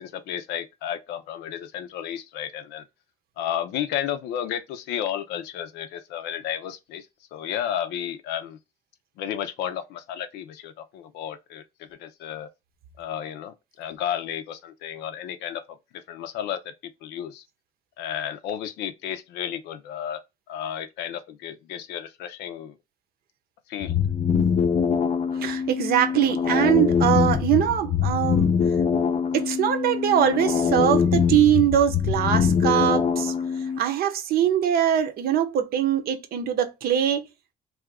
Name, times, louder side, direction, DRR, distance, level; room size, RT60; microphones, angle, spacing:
voice 1, 0.0-2.8 3.4-8.6 9.2-11.6 11.9-12.5 13.0-15.8 16.1-16.7 17.0-17.4 18.0-20.2 20.5-22.7 23.7-24.0, left 10 dB, 85° left, 0.6 m, -32 dB
sound 1, 23.8-33.8, left 6 dB, 40° left, 0.5 m, -23 dB
voice 2, 25.4-28.5 29.3-33.3 33.8-37.2, right 10 dB, 65° right, 0.7 m, -22 dB
2.7 x 2.5 x 3.3 m
cardioid pair, 110°, 17 cm